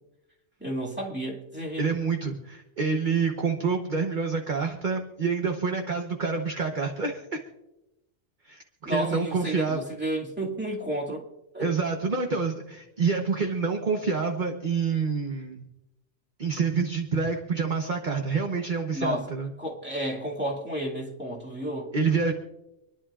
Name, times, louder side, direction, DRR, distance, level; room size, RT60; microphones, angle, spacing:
voice 1, 0.6-1.9 8.8-11.2 11.5-11.7 18.9-19.3 19.6-21.9, right 1 dB, 10° right, -3 dB, 2.4 m, -31 dB
voice 2, 1.8-7.4 8.5-9.8 11.6-15.6 16.4-19.5 21.9-22.3, right 5 dB, 40° right, 3 dB, 1.1 m, -27 dB
27.5 x 11.0 x 2.5 m, 0.92 s
omnidirectional pair, 1.4 m